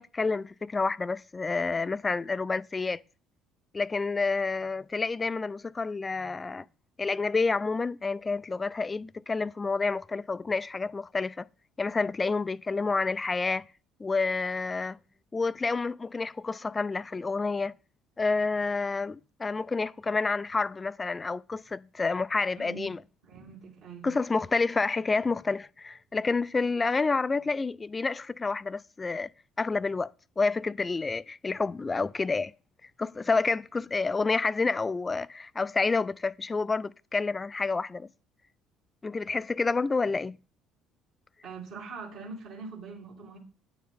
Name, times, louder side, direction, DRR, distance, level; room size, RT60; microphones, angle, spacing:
voice 1, 0.0-3.0 3.7-6.6 7.0-11.4 11.8-13.6 14.0-15.0 15.3-17.7 18.2-23.0 24.0-29.3 29.6-30.1 30.4-32.5 33.0-38.1 39.0-40.4, left 4 dB, 25° left, 0.3 m, -29 dB
voice 2, 22.6-22.9 23.2-24.1 41.4-43.4, right 4 dB, 60° right, 3.8 m, -43 dB
9.9 x 6.8 x 3.7 m
figure-of-eight pair, 55°, 0 cm